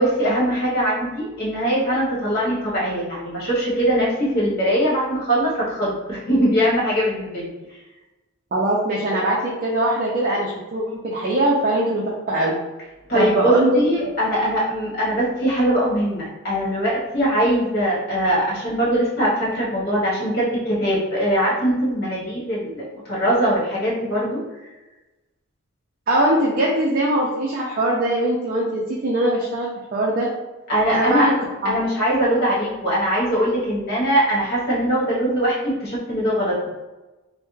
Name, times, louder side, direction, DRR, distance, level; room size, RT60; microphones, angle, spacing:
voice 1, 0.0-7.5 13.1-24.4 30.7-31.3 31.6-36.7, equal, 50° left, -6 dB, 1.2 m, -21 dB
voice 2, 8.5-12.5 13.1-13.8 26.1-30.3 30.9-32.1, right 1 dB, 40° right, -4 dB, 0.4 m, -21 dB
3.3 x 2.1 x 3.1 m, 1.1 s
head